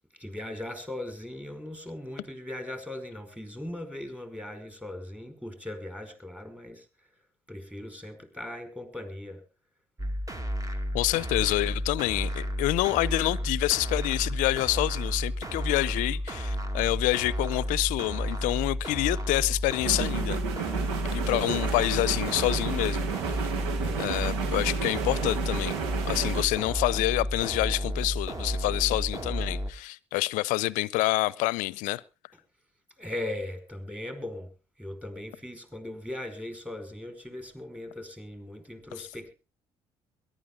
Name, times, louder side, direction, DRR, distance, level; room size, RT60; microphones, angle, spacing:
voice 1, 0.2-6.8 7.5-9.4 23.7-24.1 33.0-34.5 34.8-39.3, left 1 dB, 10° right, 5.0 m, -39 dB
sound 1, 10.0-29.7, equal, 25° right, 2.3 m, -32 dB
voice 2, 10.9-20.4 20.6-20.8 21.1-23.5 24.0-25.7 26.1-32.0 39.0-39.1, left 20 dB, 70° left, 0.6 m, -27 dB
sound 2, 19.8-26.4, right 8 dB, 80° right, 1.5 m, -32 dB
22.5 x 11.5 x 3.7 m
hypercardioid pair, 50°, 14 cm